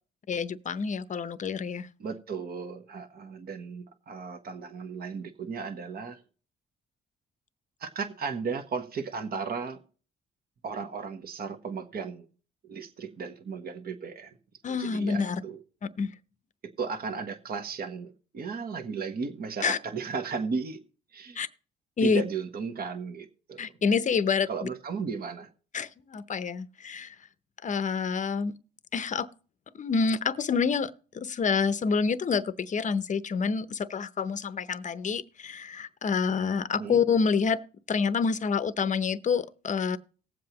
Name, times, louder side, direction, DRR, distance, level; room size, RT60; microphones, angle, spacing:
voice 1, 0.3-1.9 14.6-15.4 16.0-16.1 19.6-19.8 21.4-21.5 22.0-22.2 23.6-24.5 25.7-27.1 27.6-28.5 28.9-29.3 29.7-37.6 37.9-40.0, left 5 dB, 40° left, 0.7 m, -27 dB
voice 2, 2.0-6.2 7.8-9.8 10.6-12.3 12.6-14.4 14.8-15.6 16.6-20.8 21.1-21.4 22.0-23.6 24.5-25.5 36.8-37.0, right 5 dB, 50° right, 1.3 m, -35 dB
18.5 x 7.6 x 2.9 m
cardioid pair, 90°, 20 cm